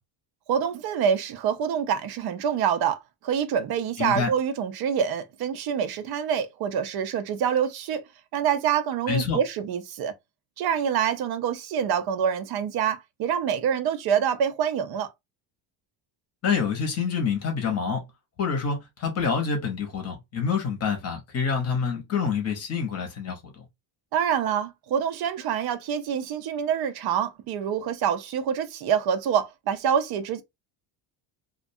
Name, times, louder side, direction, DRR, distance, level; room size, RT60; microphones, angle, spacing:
voice 1, 0.5-8.0 8.3-10.1 10.6-15.1 24.1-30.4, right 8 dB, 50° right, 0.5 m, -26 dB
voice 2, 4.0-4.3 9.1-9.4 16.4-18.0 18.4-23.6, left 6 dB, 30° left, 0.8 m, -27 dB
2.5 x 2.2 x 2.6 m
cardioid pair, 160°, 49 cm